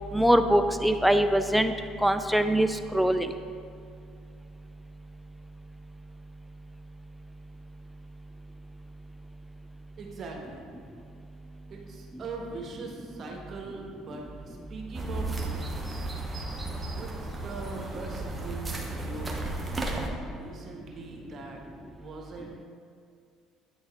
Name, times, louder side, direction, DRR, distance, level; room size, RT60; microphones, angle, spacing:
voice 1, 0.1-1.7 2.0-3.3, right 1 dB, ahead, 9 dB, 0.3 m, -23 dB
voice 2, 10.0-10.6 11.7-15.8 16.9-19.4 19.7-21.6 22.0-22.6, right 3 dB, 45° right, 0 dB, 1.2 m, -41 dB
sound 1, 14.9-20.1, right 2 dB, 20° right, 1.0 m, -34 dB
8.7 x 4.0 x 3.6 m, 2.3 s
hypercardioid pair, 70°, 0 cm